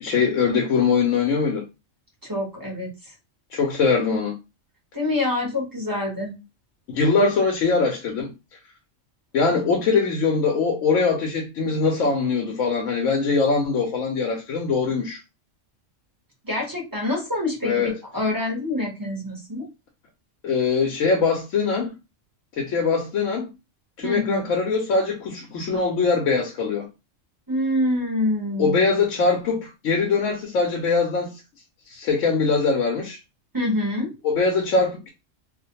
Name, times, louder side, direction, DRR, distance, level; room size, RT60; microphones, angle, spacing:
voice 1, 0.0-1.6 3.5-4.3 6.9-8.3 9.3-15.2 17.6-17.9 20.4-21.9 22.6-23.5 24.0-26.9 28.6-31.4 31.9-33.2 34.2-35.1, left 4 dB, 85° left, 1.0 m, -22 dB
voice 2, 2.2-2.9 4.9-6.3 16.4-19.7 24.0-24.5 27.5-28.9 33.5-34.1, left 1 dB, 20° right, 0.8 m, -26 dB
2.4 x 2.1 x 2.8 m
omnidirectional pair, 1.3 m